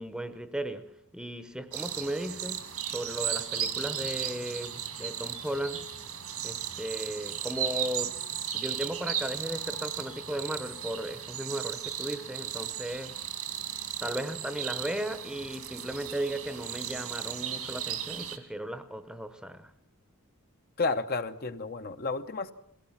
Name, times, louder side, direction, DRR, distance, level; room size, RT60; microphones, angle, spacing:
voice 1, 0.0-2.6 2.9-5.8 6.4-8.2 8.5-13.2 14.0-19.7, right 1 dB, 5° right, 0.9 m, -36 dB
sound 1, 1.7-18.4, right 9 dB, 80° right, 2.3 m, -36 dB
voice 2, 20.8-22.5, left 3 dB, 45° left, 0.8 m, -31 dB
22.0 x 17.0 x 7.2 m
head